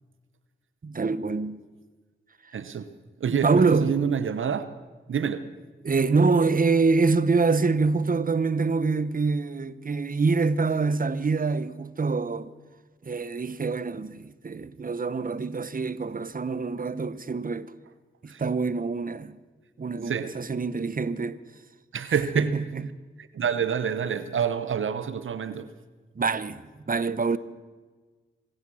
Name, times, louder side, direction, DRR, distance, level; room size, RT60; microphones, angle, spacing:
voice 1, 0.8-1.6 2.4-2.5 3.3-4.0 5.8-12.5 13.0-17.7 18.2-19.4 19.8-21.4 22.3-22.8 26.2-27.4, right 4 dB, 40° right, 0.9 m, -25 dB
voice 2, 2.5-2.9 3.2-4.7 5.1-5.5 18.3-18.4 20.1-20.3 21.9-22.5 23.2-25.7, right 7 dB, 70° right, 0.9 m, -27 dB
25.5 x 9.0 x 6.3 m
cardioid pair, 45°, 21 cm